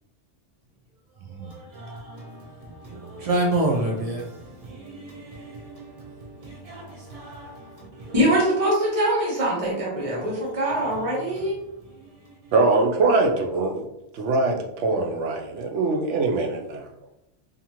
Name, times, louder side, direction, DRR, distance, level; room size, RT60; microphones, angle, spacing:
voice 1, 1.2-8.2 10.3-11.6 11.9-12.5, right 2 dB, 55° right, 0.4 m, -31 dB
voice 2, 8.1-11.6, right 1 dB, 35° right, 0.8 m, -23 dB
voice 3, 12.5-13.9 14.1-16.9, right 3 dB, 80° right, 0.9 m, -22 dB
2.5 x 2.4 x 2.9 m
omnidirectional pair, 1.2 m